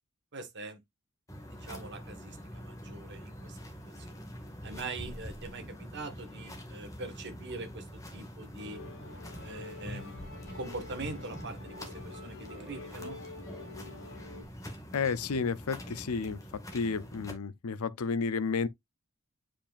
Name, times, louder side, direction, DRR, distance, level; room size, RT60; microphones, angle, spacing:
voice 1, 0.3-0.8 1.5-3.6 4.0-4.2 4.6-7.9 8.1-8.8 9.4-13.2, right 3 dB, 55° right, 1.4 m, -43 dB
sound 1, 1.3-17.3, equal, 15° left, 1.8 m, -45 dB
Musical instrument, 8.6-14.4, left 2 dB, 60° left, 2.6 m, -47 dB
voice 2, 14.9-16.4 16.7-18.7, left 5 dB, 90° left, 0.6 m, -31 dB
8.6 x 5.1 x 2.4 m
head